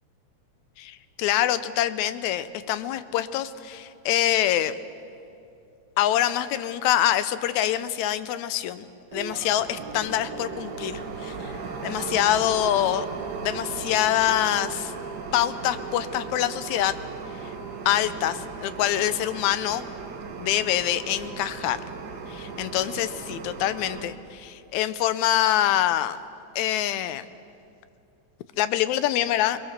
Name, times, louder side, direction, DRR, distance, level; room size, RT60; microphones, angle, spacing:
voice 1, 0.8-4.8 6.0-13.1 13.4-14.9 15.3-17.0 17.4-17.5 17.9-19.8 20.4-21.8 22.3-26.2 26.6-27.2 28.6-29.6, left 12 dB, 80° left, 13 dB, 2.0 m, -25 dB
sound 1, 9.1-24.1, right 5 dB, 55° right, 1.1 m, -36 dB
22.5 x 20.5 x 6.6 m, 2.6 s
omnidirectional pair, 3.4 m